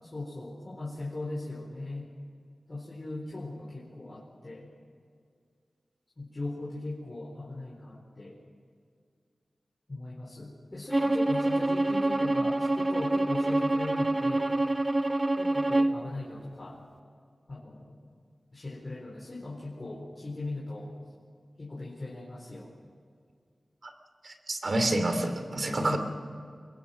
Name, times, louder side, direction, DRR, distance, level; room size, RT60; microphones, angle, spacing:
voice 1, 0.0-2.1 2.7-4.7 6.2-8.4 9.9-14.5 15.4-16.8 17.5-17.9 18.5-20.9 21.6-22.7 25.8-26.0, left 2 dB, 40° left, -4 dB, 4.3 m, -39 dB
Bowed string instrument, 10.9-16.0, right 2 dB, 30° right, 0.7 m, -26 dB
voice 2, 24.2-26.0, right 1 dB, 55° right, 7 dB, 2.6 m, -28 dB
25.0 x 21.5 x 6.1 m, 2.2 s
wide cardioid pair, 75°, 0 cm